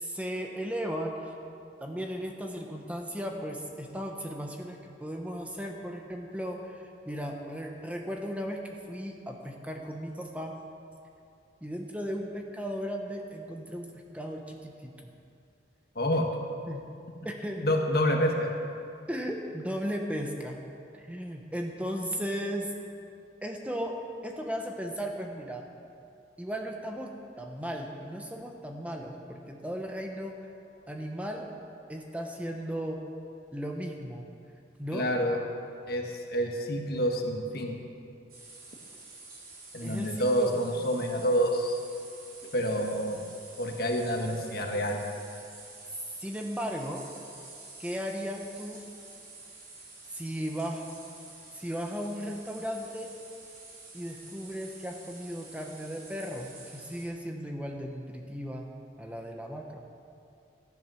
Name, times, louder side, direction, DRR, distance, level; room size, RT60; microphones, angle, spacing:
voice 1, 0.0-1.3 1.8-10.6 11.6-15.1 16.1-16.3 16.7-16.8 17.2-17.7 19.1-20.6 20.9-22.7 23.4-25.7 26.4-30.5 30.9-31.5 31.9-33.0 33.5-34.2 34.8-35.1 39.8-40.5 46.2-47.1 47.8-48.8 50.1-50.9 51.5-53.1 53.9-59.8, equal, 10° right, 2 dB, 1.0 m, -36 dB
voice 2, 15.9-16.3 17.6-18.5 34.9-35.4 35.9-37.8 39.7-41.8 42.5-43.2 43.6-45.0, equal, 55° left, 2 dB, 1.5 m, -28 dB
sound 1, 38.3-57.1, right 3 dB, 50° right, 4.0 m, -49 dB
14.0 x 10.5 x 6.4 m, 2.5 s
head